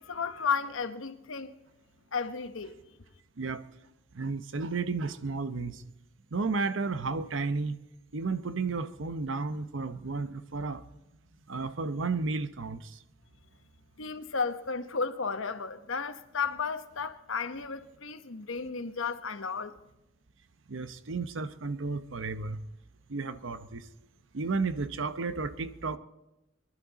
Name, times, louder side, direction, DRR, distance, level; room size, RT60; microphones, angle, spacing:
voice 1, 0.0-1.6 2.1-2.8 14.0-19.8, left 5 dB, 80° left, 1.0 m, -33 dB
voice 2, 4.1-5.8 6.3-7.8 8.1-10.8 11.5-12.9 20.7-22.6 23.1-23.8 24.3-26.0, right 4 dB, 70° right, 0.8 m, -32 dB
23.0 x 11.5 x 4.1 m
head